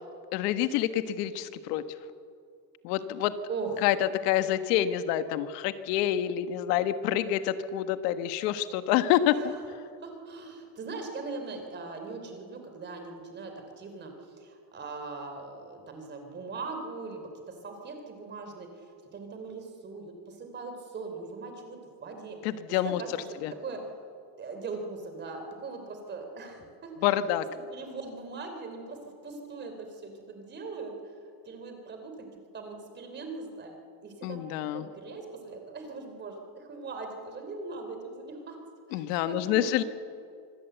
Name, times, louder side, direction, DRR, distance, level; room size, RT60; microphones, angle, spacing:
voice 1, 0.3-1.8 2.8-3.4 3.8-3.9 4.2-9.5 22.4-23.0 23.4-23.5 27.0-27.4 34.2-34.9 38.9-39.8, left 12 dB, 70° left, 11 dB, 1.4 m, -27 dB
voice 2, 3.5-3.8 9.3-9.6 10.0-22.4 22.8-23.3 23.6-23.8 24.4-27.3 27.7-30.9 31.4-32.3 32.5-34.4 34.7-38.6 38.9-39.8, right 3 dB, 20° right, 5 dB, 3.2 m, -40 dB
25.5 x 17.5 x 8.0 m, 2.4 s
cardioid pair, 170°, 49 cm